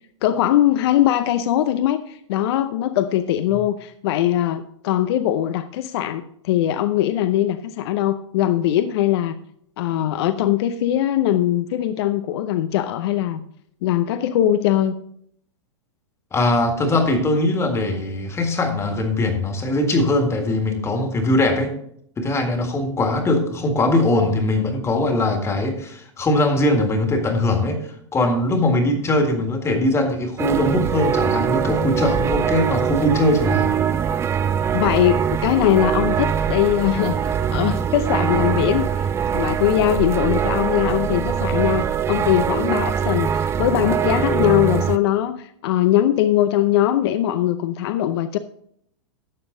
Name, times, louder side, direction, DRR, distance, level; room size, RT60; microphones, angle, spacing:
voice 1, 0.2-9.4 9.8-13.4 13.8-14.9 34.7-48.4, left 12 dB, 55° left, 10 dB, 0.6 m, -21 dB
voice 2, 16.3-21.8 22.2-27.8 28.1-33.7, left 1 dB, 15° left, 5 dB, 1.8 m, -21 dB
sound 1, 30.4-45.0, right 8 dB, 15° right, 0.4 m, -22 dB
12.0 x 7.0 x 3.8 m, 0.67 s
hypercardioid pair, 115°, 16 cm